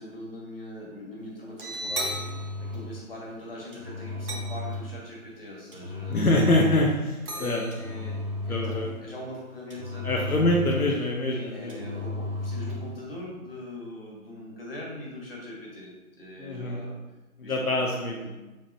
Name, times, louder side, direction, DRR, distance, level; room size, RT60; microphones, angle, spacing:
voice 1, 0.0-2.3 2.6-6.2 7.3-10.5 11.3-15.9 16.2-17.0 17.4-17.6 18.1-18.3, left 1 dB, 40° left, -4 dB, 1.8 m, -41 dB
Engine, 1.4-2.9 3.7-4.9 5.7-7.0 7.7-9.0 9.7-11.0 11.7-12.9, left 2 dB, 35° right, 1.0 m, -34 dB
sound 1, 2.0-3.2 3.5-3.7 4.3-4.8 6.6-6.8 7.3-8.5, right 3 dB, 85° right, 1.6 m, -38 dB
voice 2, 6.1-7.6 8.5-8.9 10.0-11.8 16.4-16.8 17.5-18.2, left 1 dB, 75° left, 0 dB, 1.0 m, -25 dB
7.3 x 3.4 x 4.3 m, 1.1 s
figure-of-eight pair, 165°, 44 cm